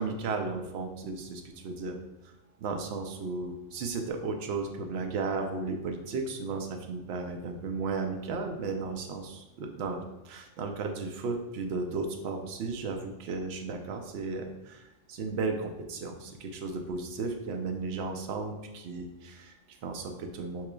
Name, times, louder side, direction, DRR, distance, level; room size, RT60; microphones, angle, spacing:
voice 1, 0.0-2.0 2.6-20.7, right 4 dB, 65° right, 4 dB, 0.7 m, -34 dB
4.7 x 3.0 x 2.2 m, 0.98 s
omnidirectional pair, 1.3 m